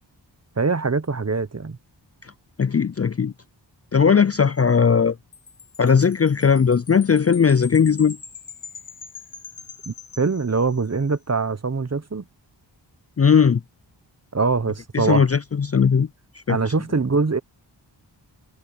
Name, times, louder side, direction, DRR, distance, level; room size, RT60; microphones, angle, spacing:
voice 1, 0.6-1.8 9.9-12.2 14.3-15.2 16.5-17.4, right 4 dB, 35° right, 0.9 m, -23 dB
voice 2, 2.6-3.3 3.9-5.2 5.8-8.2 13.2-13.6 14.9-16.1 16.5-16.6, left 6 dB, 35° left, 0.4 m, -18 dB
Wind chime, 5.3-11.0, left 5 dB, 85° left, 1.8 m, -43 dB
wide cardioid pair, 45°, 45 cm